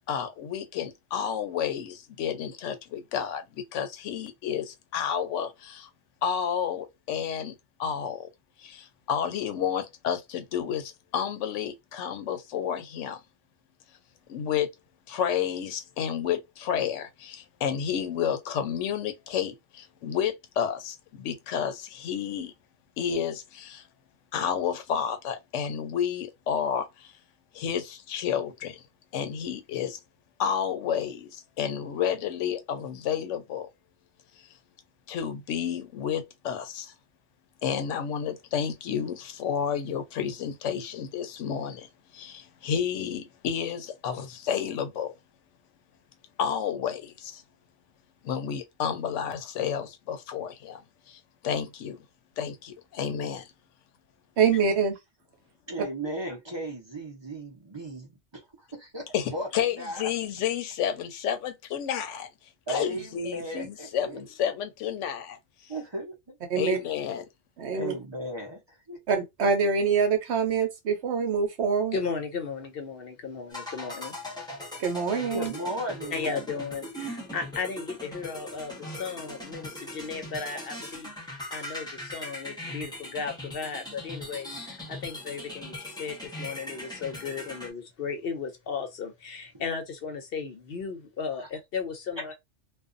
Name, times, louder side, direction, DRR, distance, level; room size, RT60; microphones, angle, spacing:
voice 1, 0.0-5.9 6.2-8.3 8.6-13.2 14.3-14.7 15.1-22.5 23.0-23.8 24.3-27.1 27.5-28.8 29.1-30.0 30.4-33.7 34.4-34.5 35.1-36.9 37.6-45.2 46.4-47.4 48.2-52.1 52.4-53.5 59.1-62.3 62.7-65.7 66.5-67.2, left 8 dB, 85° left, 0.9 m, -31 dB
voice 2, 54.4-54.9 66.5-66.8 67.6-67.9 69.1-72.0 74.8-75.5, right 5 dB, 70° right, 1.0 m, -25 dB
voice 3, 55.7-58.4 58.7-59.5 59.7-60.1 62.7-64.2 65.7-66.4 67.7-69.0 75.3-76.3, right 1 dB, 30° right, 0.6 m, -36 dB
voice 4, 71.9-74.2 76.1-92.3, left 5 dB, 60° left, 0.7 m, -35 dB
sound 1, 73.5-87.7, left 1 dB, 5° left, 0.7 m, -40 dB
2.5 x 2.3 x 2.4 m
omnidirectional pair, 1.2 m